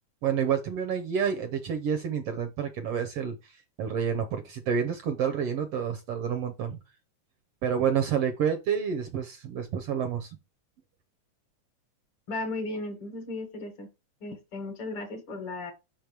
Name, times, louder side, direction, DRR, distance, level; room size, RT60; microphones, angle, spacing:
voice 1, 0.2-6.8 7.6-10.4, right 7 dB, 70° right, 1.5 m, -29 dB
voice 2, 12.3-13.9 14.2-15.7, left 2 dB, 55° left, 1.7 m, -35 dB
5.9 x 5.2 x 4.6 m
omnidirectional pair, 3.4 m